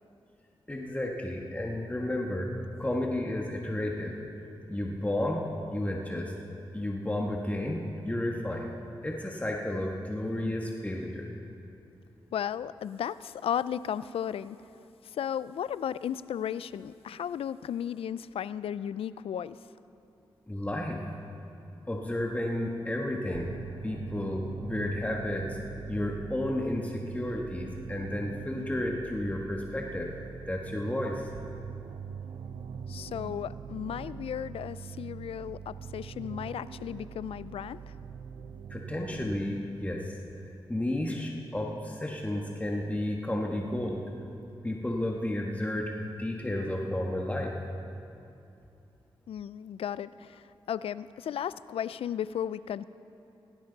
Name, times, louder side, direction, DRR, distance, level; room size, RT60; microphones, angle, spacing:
voice 1, 0.7-2.5 2.8-4.2 4.7-6.3 6.7-8.7 9.0-11.3 20.5-21.0 21.9-23.5 23.8-25.6 25.9-30.1 30.5-31.3 38.7-40.1 40.7-44.0 44.6-47.5, left 1 dB, 15° left, 0 dB, 1.5 m, -32 dB
voice 2, 12.3-14.6 15.0-19.6 32.9-37.9 49.3-52.9, left 9 dB, 80° left, 17 dB, 0.4 m, -35 dB
sound 1, 23.3-39.4, right 6 dB, 90° right, 0.6 m, -42 dB
17.5 x 16.0 x 4.0 m, 2.7 s
cardioid pair, 55°, 10 cm